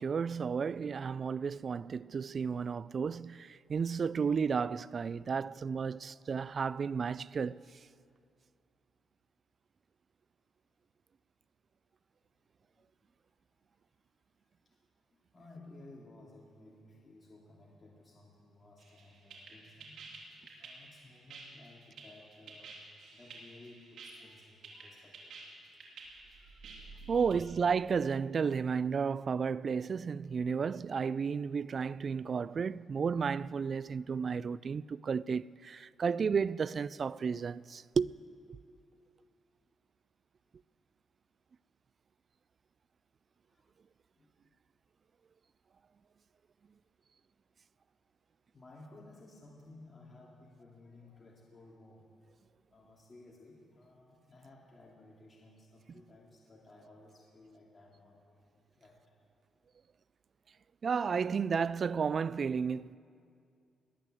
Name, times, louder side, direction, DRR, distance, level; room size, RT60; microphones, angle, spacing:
voice 1, 0.0-7.6 27.1-38.1 60.8-63.0, right 6 dB, 50° right, 0.3 m, -32 dB
voice 2, 4.8-6.3 12.8-12.9 14.7-14.8 15.1-20.0 20.6-22.8 23.1-25.3 27.0-27.6 30.2-30.6 31.1-31.2 43.5-43.7 44.2-44.3 48.5-52.0 52.7-58.4 58.8-59.0 62.8-62.9, left 2 dB, 35° left, 2.6 m, -57 dB
sound 1, 18.8-27.4, right 4 dB, 75° right, 3.2 m, -50 dB
20.5 x 9.2 x 7.8 m
cardioid pair, 75°, 0 cm